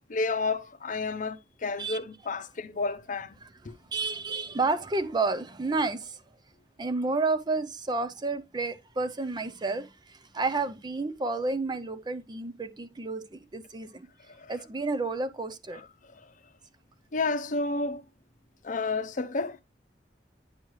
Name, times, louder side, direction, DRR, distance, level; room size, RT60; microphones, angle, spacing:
voice 1, 0.0-3.4 14.3-14.6 15.7-16.3 17.1-18.0 18.6-19.6, left 3 dB, 45° left, 0.7 m, -31 dB
voice 2, 3.9-6.2 6.8-14.1 14.5-15.8, right 3 dB, 25° right, 0.5 m, -30 dB
8.9 x 6.2 x 3.1 m
head